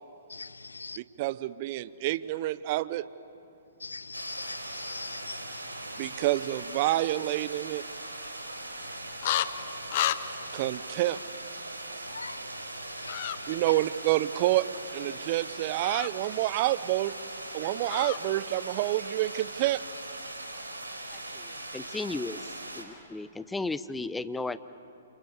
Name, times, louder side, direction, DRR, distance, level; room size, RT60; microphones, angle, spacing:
voice 1, 1.0-3.0 6.0-7.8 10.5-11.2 13.5-14.7 14.9-17.2 17.5-19.8, right 16 dB, 40° right, 0.8 m, -28 dB
voice 2, 3.8-5.4 12.1-12.4 13.0-13.1, left 3 dB, 80° left, 0.7 m, -40 dB
sound 1, 4.1-22.8, right 2 dB, 85° right, 4.1 m, -40 dB
sound 2, 9.2-9.5 9.9-10.2 13.1-13.4 15.8-16.1 17.9-18.2, left 13 dB, 45° left, 1.0 m, -29 dB
voice 3, 21.1-22.4 22.7-24.6, left 3 dB, 5° left, 0.8 m, -35 dB
30.0 x 28.5 x 6.8 m
figure-of-eight pair, 120°, 0 cm